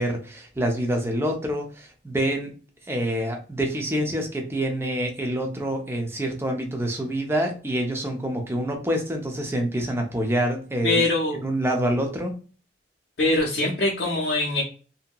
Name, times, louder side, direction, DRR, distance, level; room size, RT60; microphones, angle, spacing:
voice 1, 0.0-2.5 2.9-11.0 11.4-12.3, right 1 dB, 15° right, 3 dB, 0.5 m, -26 dB
voice 2, 10.8-11.4 13.2-14.6, left 2 dB, 55° left, -4 dB, 0.6 m, -23 dB
2.7 x 2.7 x 2.2 m, 0.37 s
head